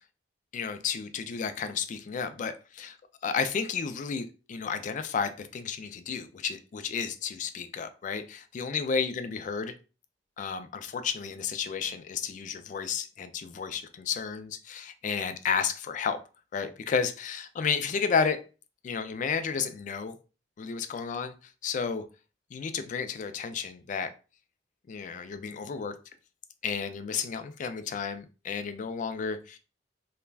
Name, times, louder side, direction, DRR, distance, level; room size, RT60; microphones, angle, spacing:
voice 1, 0.5-3.0 3.2-9.7 10.4-16.2 16.5-18.4 18.8-20.2 20.6-21.3 21.6-22.0 22.5-24.1 24.9-25.9 26.6-29.6, left 6 dB, 45° left, 10 dB, 0.3 m, -32 dB
3.3 x 2.1 x 2.3 m, 0.33 s
head